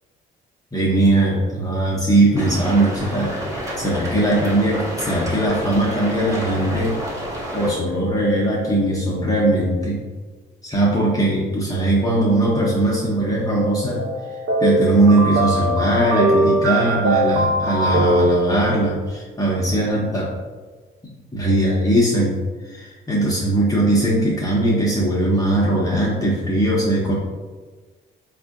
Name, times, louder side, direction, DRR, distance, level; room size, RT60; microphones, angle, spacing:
voice 1, 0.7-3.3 3.8-6.9 7.5-10.0 10.6-14.1 14.6-20.3 21.3-22.4 22.7-27.1, right 1 dB, 20° left, -6 dB, 0.7 m, -19 dB
sound 1, 2.4-7.7, equal, 15° right, 1.1 m, -29 dB
sound 2, 14.0-19.0, right 1 dB, 75° right, 0.6 m, -21 dB
4.2 x 2.6 x 2.5 m, 1.4 s
cardioid pair, 90°, 20 cm